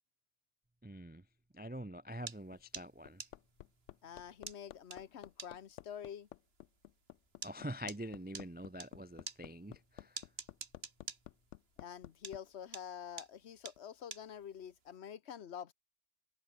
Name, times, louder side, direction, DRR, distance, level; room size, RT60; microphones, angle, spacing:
voice 1, 0.8-1.2 1.5-3.2 7.4-10.2, equal, 10° right, 0.5 m, -45 dB
sound 1, 2.3-8.9 9.3-12.0 12.2-14.9, right 5 dB, 60° right, 1.8 m, -47 dB
Hammer, 2.5-12.4 13.8-13.9, left 13 dB, 90° left, 0.9 m, -53 dB
voice 2, 4.0-6.3 11.8-15.7, left 8 dB, 65° left, 1.2 m, -47 dB
open air
omnidirectional pair, 1.2 m